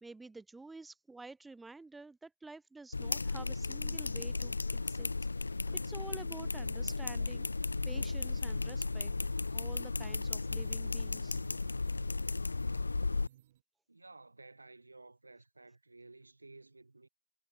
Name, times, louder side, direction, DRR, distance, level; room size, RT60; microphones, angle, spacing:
voice 1, 0.0-7.5 7.8-9.1 9.5-11.4, right 3 dB, 5° right, 1.2 m, -50 dB
sound 1, 2.9-13.3, left 3 dB, 75° left, 1.2 m, -35 dB
sound 2, 7.8-13.6, right 13 dB, 25° right, 4.4 m, -62 dB
voice 2, 13.9-17.1, right 3 dB, 85° right, 5.9 m, -55 dB
figure-of-eight pair, 160°, 0 cm